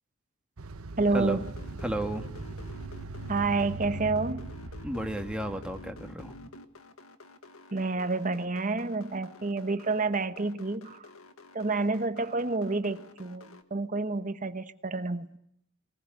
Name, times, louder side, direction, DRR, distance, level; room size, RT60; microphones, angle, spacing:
sound 1, 0.6-6.1, right 2 dB, 85° right, 1.0 m, -40 dB
voice 1, 1.0-1.5 3.3-4.5 7.7-11.0 11.5-15.3, right 3 dB, 35° right, 1.2 m, -29 dB
sound 2, 1.4-13.6, left 2 dB, 80° left, 1.7 m, -48 dB
voice 2, 1.8-2.3 4.8-6.3, right 1 dB, 5° right, 1.7 m, -33 dB
21.0 x 20.0 x 9.4 m
head